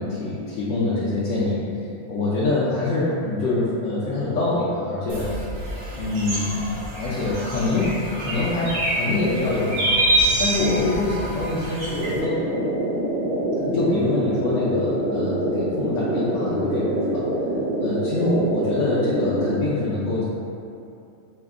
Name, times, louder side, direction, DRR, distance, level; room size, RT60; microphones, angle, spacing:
voice 1, 0.0-5.3 6.0-6.6 7.0-9.9 10.4-12.5 13.6-17.2 17.8-20.2, left 2 dB, 65° left, -9 dB, 0.9 m, -25 dB
sound 1, 5.1-12.2, right 1 dB, 65° right, 1.1 m, -26 dB
sound 2, 12.0-19.5, right 1 dB, 85° right, 1.4 m, -25 dB
4.2 x 2.0 x 3.5 m, 2.7 s
omnidirectional pair, 1.5 m